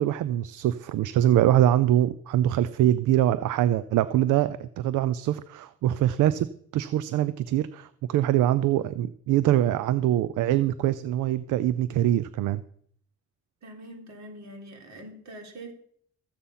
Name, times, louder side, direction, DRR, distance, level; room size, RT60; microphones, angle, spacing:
voice 1, 0.0-6.5 6.7-12.6, right 12 dB, 80° right, 16 dB, 0.6 m, -23 dB
voice 2, 13.6-15.7, right 1 dB, 65° right, 3 dB, 3.7 m, -43 dB
14.5 x 8.2 x 5.7 m, 0.63 s
cardioid pair, 90°, 30 cm